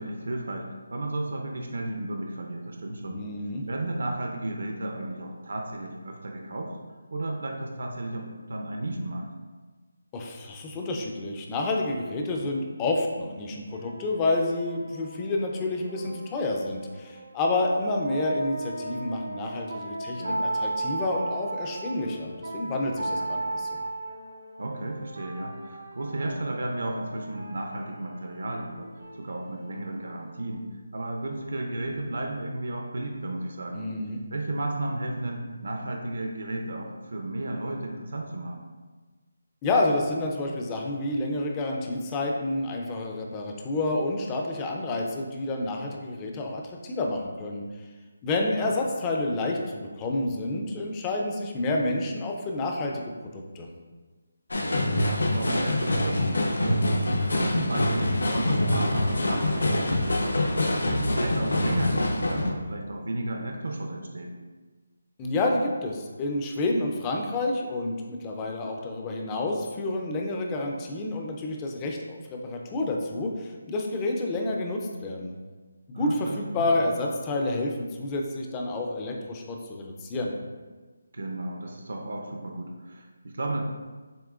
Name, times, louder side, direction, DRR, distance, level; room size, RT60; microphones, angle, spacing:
voice 1, 0.0-3.2 3.7-6.7 7.1-9.3 20.2-20.5 23.1-23.4 24.6-28.9 29.2-30.6 30.9-33.8 34.3-38.6 48.6-48.7 54.8-56.8 57.3-60.4 60.7-64.3 75.9-76.7 81.1-83.6, right 2 dB, 65° right, 2 dB, 0.6 m, -33 dB
voice 2, 3.1-3.7 10.1-23.8 33.7-34.2 39.6-47.6 48.2-53.0 53.5-53.7 65.2-75.3 75.9-80.3, left 2 dB, 10° left, 1 dB, 0.3 m, -29 dB
sound 1, 13.2-30.6, right 2 dB, 85° right, 1.0 m, -36 dB
sound 2, 54.5-62.5, left 1 dB, 85° left, 0.8 m, -25 dB
7.1 x 2.9 x 2.4 m, 1.3 s
hypercardioid pair, 175°, 0 cm